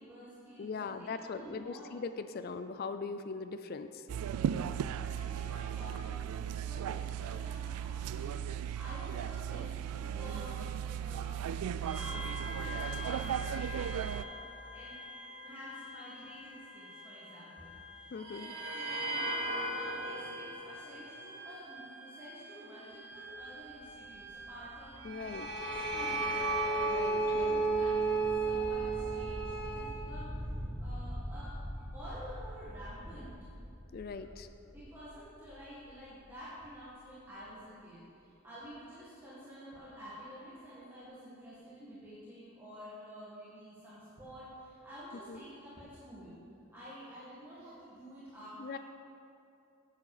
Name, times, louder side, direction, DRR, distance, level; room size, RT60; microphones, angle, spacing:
voice 1, 0.0-1.9 4.9-10.7 11.0-11.5 12.0-15.0 15.4-17.8 18.4-25.0 25.6-26.3 27.2-33.3 34.1-34.3 34.7-46.3 46.7-48.8, equal, 10° right, -11 dB, 1.7 m, -50 dB
voice 2, 0.6-4.1 18.1-18.5 25.0-25.5 26.9-27.6 33.9-34.5 45.3-45.4 48.6-48.8, left 4 dB, 45° left, 10 dB, 0.3 m, -40 dB
sound 1, 4.1-14.2, right 9 dB, 85° right, 0.3 m, -36 dB
sound 2, 11.9-17.8 18.2-29.9, right 2 dB, 55° right, 1.2 m, -36 dB
sound 3, 23.3-37.0, equal, 30° right, 2.3 m, -45 dB
9.3 x 7.6 x 4.9 m, 2.6 s
head